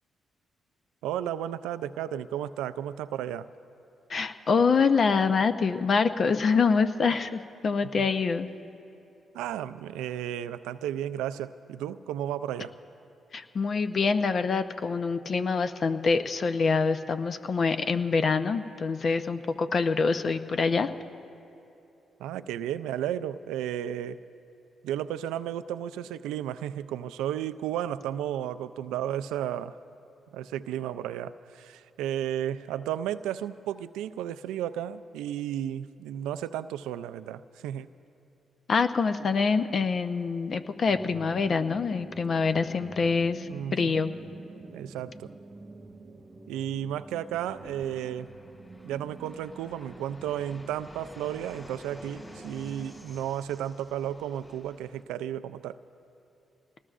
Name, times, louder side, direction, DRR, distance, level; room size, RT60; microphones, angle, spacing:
voice 1, 1.0-3.5 8.0-8.1 9.3-12.7 22.2-24.2 24.8-29.8 30.3-37.9 43.5-44.0 44.7-45.3 46.5-48.3 48.8-55.8, right 11 dB, 85° right, 13 dB, 0.3 m, -33 dB
voice 2, 4.1-8.5 13.3-20.9 38.7-44.1, left 5 dB, 55° left, 9 dB, 0.7 m, -25 dB
sound 1, 40.9-53.0, right 3 dB, 35° right, 1.0 m, -47 dB
Fixed-wing aircraft airplane, 47.4-55.0, left 1 dB, 30° left, 3.0 m, -51 dB
27.5 x 19.5 x 2.5 m, 2.8 s
supercardioid pair, 50°, 0 cm